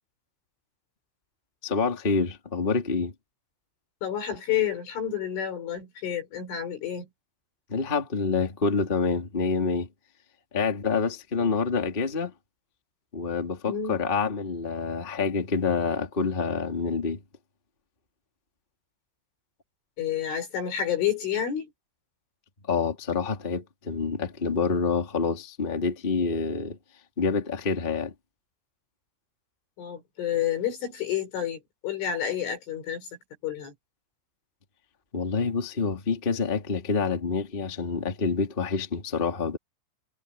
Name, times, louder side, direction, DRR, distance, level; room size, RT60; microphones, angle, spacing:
voice 1, 1.6-3.1 7.7-9.9 10.5-12.3 13.1-17.2 22.7-26.8 27.2-28.1 35.1-39.6, left 4 dB, 15° left, 1.9 m, -27 dB
voice 2, 4.0-7.1 11.4-11.5 13.7-14.0 20.0-21.7 29.8-33.1 33.4-33.7, left 9 dB, 65° left, 8.0 m, -29 dB
omnidirectional pair, 5.9 m